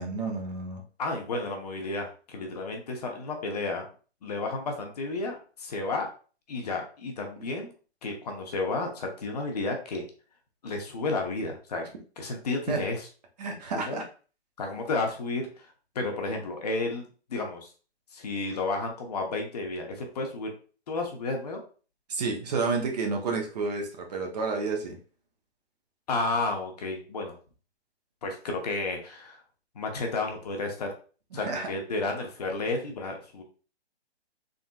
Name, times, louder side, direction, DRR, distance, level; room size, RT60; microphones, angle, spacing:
voice 1, 0.0-0.8 12.7-12.8 13.4-14.0 22.1-25.0 31.3-31.7, right 4 dB, 35° right, 2 dB, 0.8 m, -30 dB
voice 2, 1.0-3.9 4.2-6.1 6.5-7.7 8.0-10.0 10.6-11.8 12.2-13.1 13.8-14.0 14.6-15.4 15.9-17.7 18.1-20.5 20.9-21.6 26.1-27.3 28.2-29.4 29.7-30.9 31.3-33.4, left 3 dB, 35° left, 2 dB, 0.8 m, -32 dB
3.8 x 3.4 x 2.4 m, 0.38 s
hypercardioid pair, 150°, 34 cm